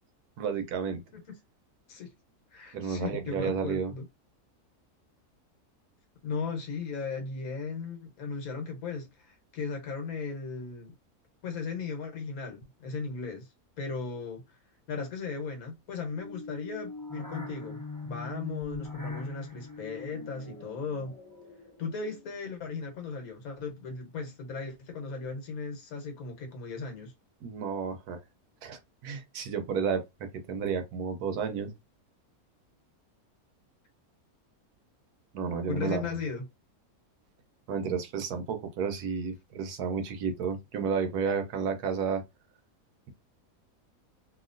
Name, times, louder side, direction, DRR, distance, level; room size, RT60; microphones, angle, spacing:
voice 1, 0.4-1.0 2.7-3.9 27.4-28.2 28.6-30.0 30.5-31.7 35.3-36.1 37.7-42.2, right 6 dB, 85° right, 1.3 m, -31 dB
voice 2, 2.5-4.0 6.2-10.9 11.4-13.5 13.8-14.6 14.9-21.2 21.8-27.1 35.7-36.5, left 4 dB, 70° left, 1.4 m, -37 dB
sound 1, 16.0-22.4, left 3 dB, 20° left, 0.7 m, -41 dB
2.9 x 2.8 x 2.5 m
omnidirectional pair, 1.6 m